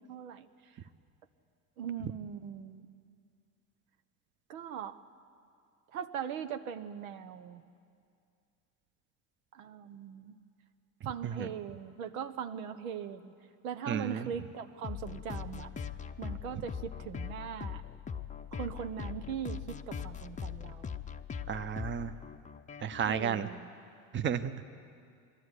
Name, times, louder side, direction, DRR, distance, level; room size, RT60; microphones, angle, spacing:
voice 1, 0.1-0.5 1.8-2.9 4.5-5.0 5.9-7.6 9.5-10.4 11.0-13.3 13.6-15.7 16.2-17.8 18.5-20.9 23.0-23.7, right 8 dB, 80° right, 9 dB, 1.0 m, -40 dB
voice 2, 13.9-14.3 21.5-22.1 22.8-23.5 24.1-24.6, right 8 dB, 30° right, 10 dB, 0.9 m, -32 dB
sound 1, 14.8-23.2, left 7 dB, 20° left, 0.7 m, -41 dB
21.5 x 13.0 x 9.8 m, 2.4 s
hypercardioid pair, 90°, 41 cm